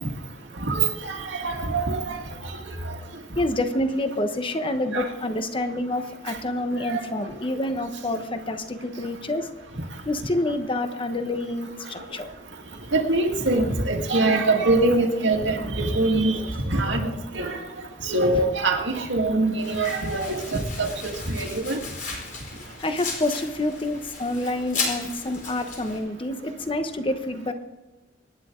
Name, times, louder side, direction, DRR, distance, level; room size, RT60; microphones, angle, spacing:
voice 1, 0.6-2.2 4.9-5.1 6.9-7.0 12.9-16.4 16.7-17.1 17.3-17.6 18.0-21.8, right 2 dB, 85° right, 2 dB, 2.1 m, -23 dB
voice 2, 3.3-9.5 10.0-12.3 22.8-27.5, left 1 dB, 30° left, 7 dB, 1.1 m, -27 dB
Domestic sounds home sounds, 19.6-26.0, left 4 dB, 45° left, 4.4 m, -35 dB
25.5 x 10.0 x 3.8 m, 1.1 s
head